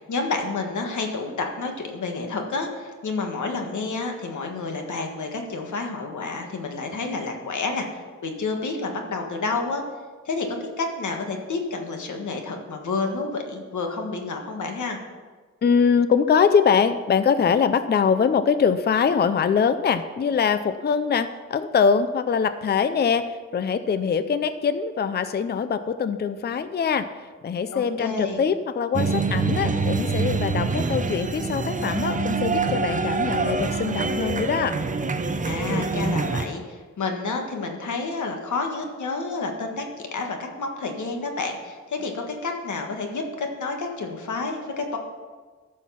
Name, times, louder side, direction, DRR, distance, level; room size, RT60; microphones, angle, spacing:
voice 1, 0.1-9.8 10.2-15.0 27.7-28.4 35.4-45.0, left 3 dB, 80° left, 3 dB, 1.6 m, -29 dB
voice 2, 15.6-27.1 27.4-34.8, left 6 dB, 35° left, 12 dB, 0.4 m, -23 dB
sound 1, 28.9-36.5, right 4 dB, 25° right, 0.6 m, -25 dB
13.5 x 6.4 x 5.7 m, 1.4 s
wide cardioid pair, 155°, 29 cm